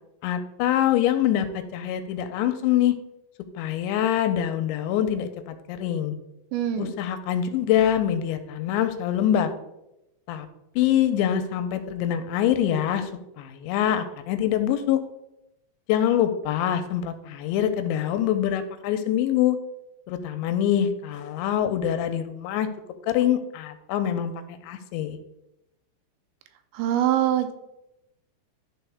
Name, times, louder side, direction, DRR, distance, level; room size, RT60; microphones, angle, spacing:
voice 1, 0.2-2.9 3.6-6.2 6.8-9.5 10.3-10.5 10.8-13.1 13.4-15.0 15.9-19.6 20.1-22.7 23.0-25.2, left 10 dB, 85° left, 9 dB, 2.8 m, -24 dB
voice 2, 6.5-6.9 26.7-27.5, right 11 dB, 85° right, 7 dB, 2.9 m, -23 dB
12.0 x 4.1 x 3.5 m, 0.87 s
omnidirectional pair, 5.2 m